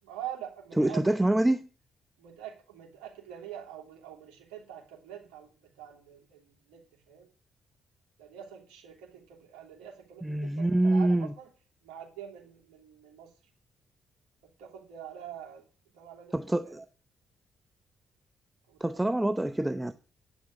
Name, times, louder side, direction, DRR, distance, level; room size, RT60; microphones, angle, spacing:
voice 1, 0.0-1.3 2.2-5.5 5.8-7.3 8.2-11.5 11.8-13.3 14.6-16.8 18.7-19.1, right 10 dB, 75° right, 2.9 m, -45 dB
voice 2, 0.8-1.6 10.2-11.3 16.3-16.8 18.8-19.9, right 1 dB, 10° right, 0.7 m, -26 dB
9.4 x 6.2 x 8.0 m
hypercardioid pair, 45°, 0 cm